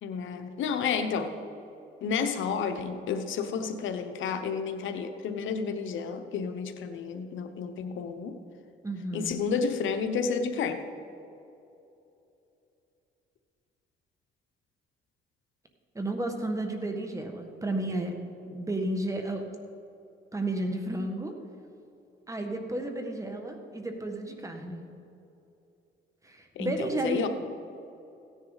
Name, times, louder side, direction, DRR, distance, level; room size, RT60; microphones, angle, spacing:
voice 1, 0.0-1.3 2.0-8.4 9.1-10.8 26.6-27.3, left 6 dB, 75° left, 7 dB, 0.9 m, -31 dB
voice 2, 8.8-9.4 15.9-18.2 18.5-19.4 20.3-21.3 22.3-24.8 26.2-27.3, right 1 dB, 15° right, 4 dB, 1.5 m, -32 dB
16.5 x 10.0 x 4.0 m, 2.8 s
cardioid pair, 90°, 20 cm